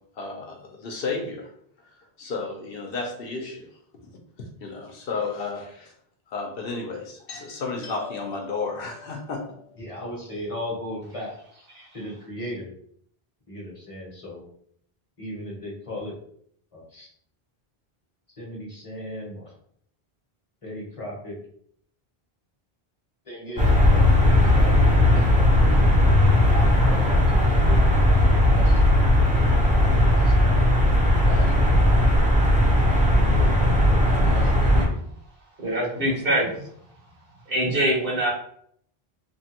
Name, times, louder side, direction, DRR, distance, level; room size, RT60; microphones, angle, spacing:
voice 1, 0.2-1.5 1.8-3.7 4.6-5.9 6.3-9.8, left 4 dB, 70° left, 1 dB, 0.8 m, -32 dB
voice 2, 9.8-11.3 11.9-12.7 13.5-14.5 15.2-16.2 16.7-17.1 18.4-19.5 20.6-21.4 23.2-24.1 24.3-25.5 26.5-28.8 30.1-30.7 31.2-31.8 33.0-34.9, left 1 dB, 35° left, -3 dB, 0.8 m, -37 dB
sound 1, 23.6-34.8, left 1 dB, 10° right, 0.4 m, -18 dB
voice 3, 35.6-36.6 37.5-38.3, right 1 dB, 65° right, -3 dB, 1.2 m, -24 dB
3.0 x 2.2 x 2.8 m, 0.66 s
omnidirectional pair, 1.0 m